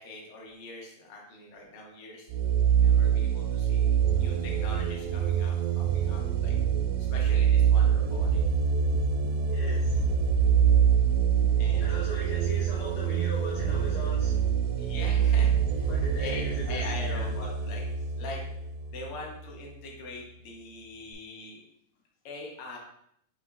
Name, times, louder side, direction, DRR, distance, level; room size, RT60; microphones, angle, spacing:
voice 1, 0.0-2.3 2.8-6.5 7.0-8.4 11.6-11.9 14.8-15.9 16.2-17.8 18.2-18.4 18.9-21.6 22.2-22.8, left 2 dB, 65° left, -1 dB, 1.4 m, -42 dB
sound 1, 2.3-19.7, right 8 dB, 80° right, 1.7 m, -25 dB
voice 2, 8.9-10.3 10.9-14.5 15.9-17.3, left 1 dB, 80° left, -2 dB, 1.5 m, -41 dB
5.4 x 2.8 x 3.6 m, 0.73 s
omnidirectional pair, 3.6 m